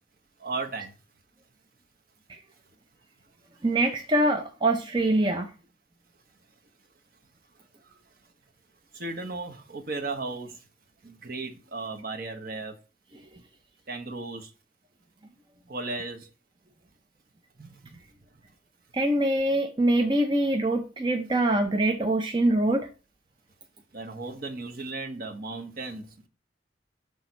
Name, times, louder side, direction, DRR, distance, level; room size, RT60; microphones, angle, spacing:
voice 1, 0.4-0.9 8.9-10.6 11.0-12.8 13.9-14.5 15.7-16.3 23.9-26.3, right 3 dB, 55° right, 1.0 m, -35 dB
voice 2, 3.6-5.5 18.9-22.9, right 1 dB, 25° right, 0.5 m, -24 dB
6.1 x 3.5 x 5.3 m
head